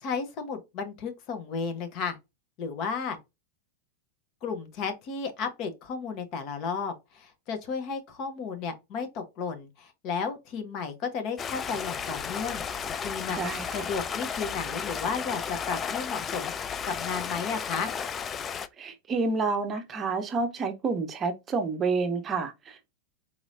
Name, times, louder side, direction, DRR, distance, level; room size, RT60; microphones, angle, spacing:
voice 1, 0.0-2.2 2.6-3.2 4.4-12.6 13.0-13.4 13.7-17.9, left 5 dB, 40° left, 0.9 m, -33 dB
Stream, 11.4-18.7, left 7 dB, 25° left, 0.4 m, -34 dB
voice 2, 13.3-13.9 18.8-22.9, right 4 dB, 25° right, 0.7 m, -29 dB
4.2 x 3.0 x 2.6 m
figure-of-eight pair, 90°, 0 cm